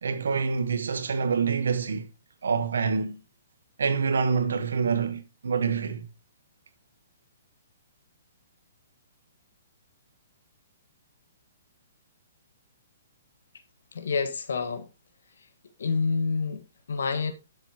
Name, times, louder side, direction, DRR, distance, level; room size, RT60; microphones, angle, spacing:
voice 1, 0.0-2.1 2.4-3.2 3.8-6.1, right 5 dB, 80° right, 1.3 m, -26 dB
voice 2, 13.9-14.9 15.8-16.6 16.9-17.3, left 4 dB, 80° left, 1.6 m, -27 dB
11.5 x 7.0 x 3.0 m
hypercardioid pair, 145°, 0 cm